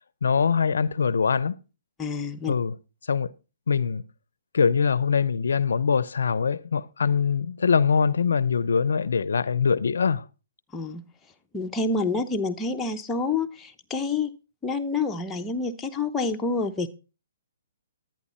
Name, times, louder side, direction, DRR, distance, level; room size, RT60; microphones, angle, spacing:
voice 1, 0.2-1.6 2.5-2.7 3.1-3.3 3.7-4.0 4.5-10.2, left 6 dB, 80° left, 0.5 m, -23 dB
voice 2, 2.0-2.5 10.7-11.0 11.5-14.3 14.6-16.9, left 3 dB, 10° left, 0.9 m, -28 dB
11.0 x 9.2 x 4.2 m
hypercardioid pair, 145°, 0 cm